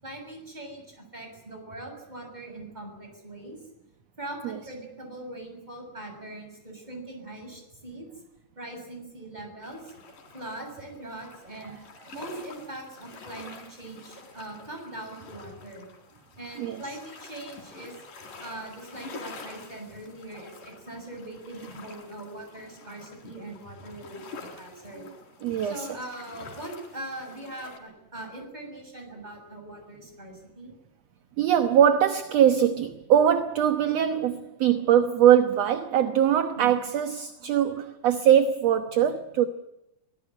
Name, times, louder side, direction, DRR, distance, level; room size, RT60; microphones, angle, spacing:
voice 1, 0.0-3.6 4.2-8.1 8.6-9.9 10.3-11.8 12.1-15.9 16.4-17.9 18.4-25.1 25.6-30.7 36.6-36.8, right 1 dB, 10° right, 7.3 m, -41 dB
sound 1, 9.6-27.8, left 4 dB, 75° left, 5.6 m, -47 dB
voice 2, 25.4-26.0 31.4-39.5, right 9 dB, 60° right, 2.0 m, -22 dB
24.0 x 19.0 x 9.9 m
omnidirectional pair, 3.8 m